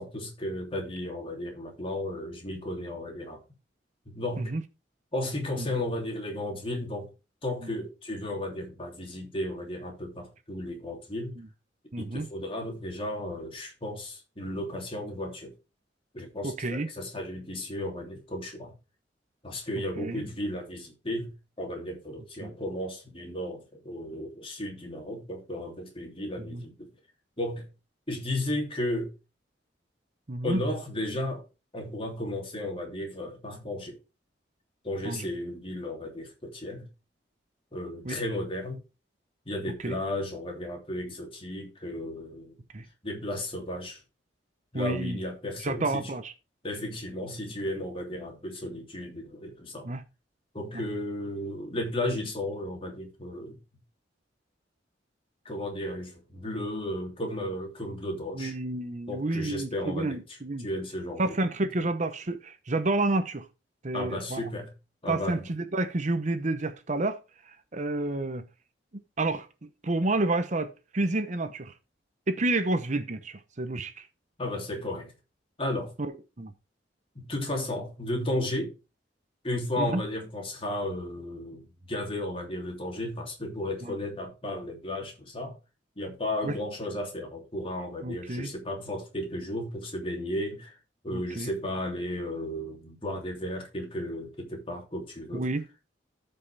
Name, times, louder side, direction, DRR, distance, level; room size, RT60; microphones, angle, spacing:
voice 1, 0.0-3.4 4.1-4.5 5.1-7.1 7.4-11.3 12.0-15.5 16.1-18.7 19.4-26.9 27.4-27.7 28.1-29.1 30.4-31.4 31.7-33.9 34.8-36.9 37.7-38.8 39.4-42.5 43.0-44.0 44.7-46.1 46.6-49.9 50.5-53.6 55.4-58.5 59.1-61.4 61.8-61.9 63.9-64.7 65.0-65.5 74.4-75.1 75.6-75.9 77.1-78.7 79.4-85.6 86.0-90.7 91.0-95.5, left 1 dB, 30° left, 3.1 m, -34 dB
voice 2, 11.9-12.3 16.4-16.9 20.0-20.2 22.4-22.5 26.5-26.6 30.3-30.6 35.0-35.3 38.0-38.2 39.8-40.0 42.7-42.8 44.7-45.2 45.6-46.3 49.8-50.0 50.7-50.8 58.3-60.7 61.2-63.5 63.8-64.4 65.1-67.2 67.5-68.4 69.2-71.7 72.3-74.1 76.4-76.5 79.8-80.0 83.8-84.0 86.4-86.6 88.0-88.5 91.1-91.5 95.3-95.8, right 2 dB, 40° right, 0.8 m, -30 dB
14.0 x 5.5 x 3.4 m
head